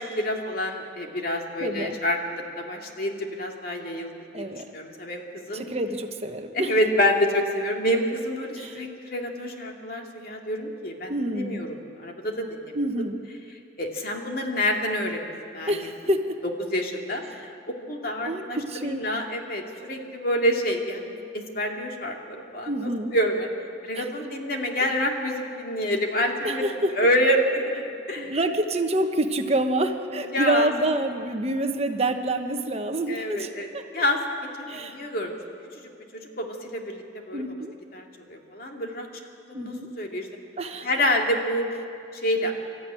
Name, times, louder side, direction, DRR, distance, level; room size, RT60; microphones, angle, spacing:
voice 1, 0.0-4.1 4.4-4.5 4.7-5.6 6.5-11.7 12.0-12.8 13.8-15.8 16.7-17.5 17.9-23.5 23.8-26.6 27.0-28.4 30.1-30.7 33.1-33.7 33.9-35.3 36.1-37.0 37.3-37.4 37.9-39.1 39.5-40.3 40.8-41.6 42.2-42.5, equal, 50° left, 1 dB, 2.5 m, -27 dB
voice 2, 1.6-2.0 4.3-4.7 5.5-6.8 8.6-8.8 11.1-11.6 12.7-13.2 15.7-16.4 17.3-17.4 18.2-19.1 22.7-23.1 23.9-24.1 26.4-26.9 28.1-33.8 34.7-35.0 37.3-37.7 39.5-39.9 40.6-40.9, right 1 dB, 35° right, 6 dB, 1.1 m, -27 dB
26.5 x 13.5 x 9.9 m, 2.5 s
head